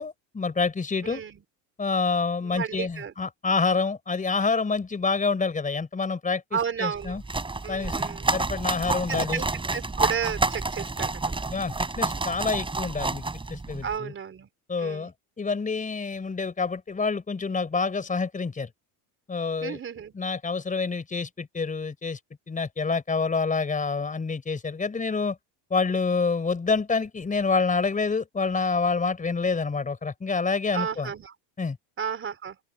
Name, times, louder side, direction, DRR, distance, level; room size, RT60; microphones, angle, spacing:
voice 1, 0.0-1.2 1.8-7.2 7.7-8.1 8.3-9.4 11.5-13.2 13.5-14.1 14.7-18.7 19.3-19.8 20.1-22.2 22.5-25.4 25.7-31.1 31.6-31.8, left 4 dB, 20° left, 4.9 m, -27 dB
voice 2, 1.0-1.4 2.4-3.1 6.5-7.2 7.6-8.3 9.1-9.5 9.7-11.1 13.8-14.5 14.8-15.1 19.6-20.1 30.7-31.3 32.0-32.6, right 7 dB, 30° right, 4.5 m, -32 dB
sound 1, 7.0-13.9, right 3 dB, 10° right, 4.5 m, -29 dB
open air
cardioid pair, 125°, 41 cm